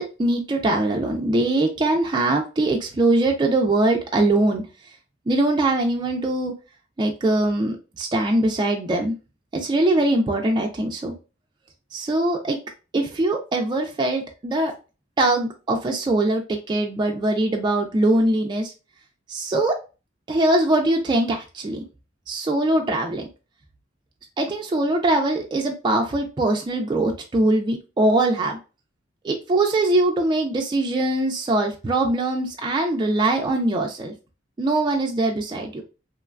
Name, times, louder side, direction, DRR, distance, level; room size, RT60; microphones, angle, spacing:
voice 1, 0.0-4.6 5.3-6.5 7.0-9.1 9.5-11.1 11.9-12.6 12.9-14.7 15.2-18.7 19.3-19.8 20.3-21.8 22.3-23.3 24.4-28.6 29.2-34.1 34.6-35.8, right 2 dB, 25° right, 1 dB, 0.3 m, -22 dB
3.1 x 2.2 x 2.3 m, 0.31 s
head